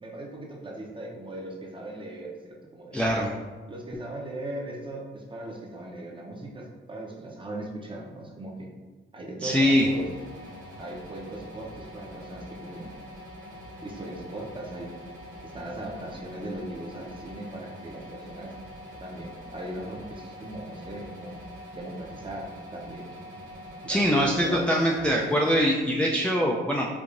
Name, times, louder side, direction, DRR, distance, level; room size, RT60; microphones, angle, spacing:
voice 1, 0.0-3.0 3.7-8.7 9.1-10.1 10.8-12.9 13.8-14.9 15.4-18.6 19.0-21.3 21.7-23.1 23.8-24.1 24.4-24.6, right 1 dB, 25° right, -1 dB, 0.7 m, -38 dB
voice 2, 2.9-3.3 9.4-9.9 23.9-26.9, equal, 5° left, -4 dB, 0.3 m, -23 dB
sound 1, 9.6-25.6, equal, 45° right, 1.4 m, -44 dB
4.6 x 2.5 x 2.5 m, 1.3 s
cardioid pair, 80°, 21 cm